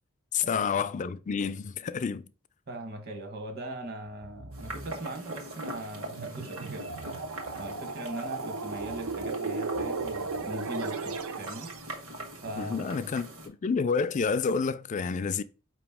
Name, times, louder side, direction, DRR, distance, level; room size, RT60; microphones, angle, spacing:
voice 1, 0.3-2.2 12.6-15.4, left 5 dB, 35° left, 0.3 m, -29 dB
voice 2, 2.7-7.2 7.6-12.0 12.4-13.1, right 1 dB, 50° right, 1.1 m, -40 dB
sound 1, 4.2-5.4 6.7-8.1 8.7-11.2, right 1 dB, 35° right, 0.4 m, -51 dB
sound 2, 4.5-13.5, right 1 dB, 70° right, 1.5 m, -42 dB
sound 3, 6.1-11.9, right 4 dB, 85° right, 0.5 m, -35 dB
5.0 x 3.0 x 3.5 m
head